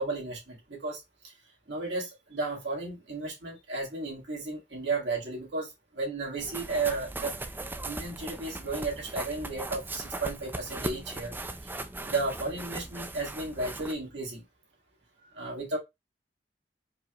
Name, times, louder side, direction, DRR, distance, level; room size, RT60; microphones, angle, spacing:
voice 1, 0.0-1.3 1.7-7.3 7.8-11.3 12.0-14.4 15.3-15.8, right 3 dB, 80° right, 1.9 m, -34 dB
sound 1, 6.4-13.9, right 2 dB, 10° right, 0.4 m, -38 dB
4.8 x 2.4 x 2.9 m
head